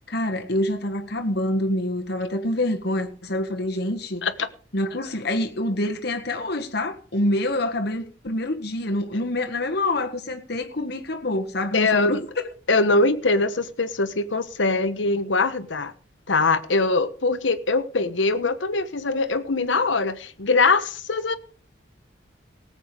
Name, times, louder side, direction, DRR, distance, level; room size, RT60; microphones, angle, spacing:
voice 1, 0.1-4.2 4.7-12.2, left 1 dB, 60° left, 1.7 m, -26 dB
voice 2, 11.7-12.2 12.7-15.9 16.3-21.4, left 3 dB, 85° left, 1.2 m, -22 dB
18.5 x 8.0 x 5.0 m
head